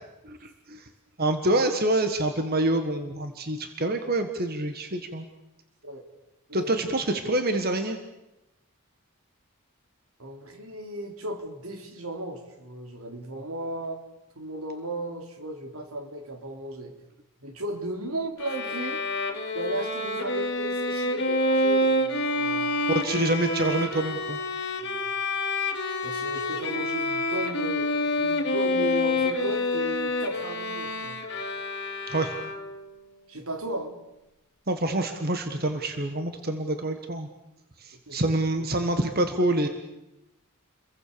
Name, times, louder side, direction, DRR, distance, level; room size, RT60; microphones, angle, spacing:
voice 1, 0.2-0.9 1.2-5.2 6.5-8.0 22.9-24.4 32.1-32.3 34.7-37.3 37.8-39.7, right 1 dB, 45° right, 7 dB, 1.6 m, -26 dB
voice 2, 10.2-14.0 14.3-16.9 17.4-19.0 19.5-22.8 24.8-25.1 26.0-27.9 28.2-31.2 33.3-34.0 38.1-38.3, right 1 dB, 80° right, 5 dB, 3.6 m, -35 dB
Bowed string instrument, 18.4-32.9, left 2 dB, 50° left, 2.7 m, -28 dB
30.0 x 22.5 x 6.9 m, 0.93 s
head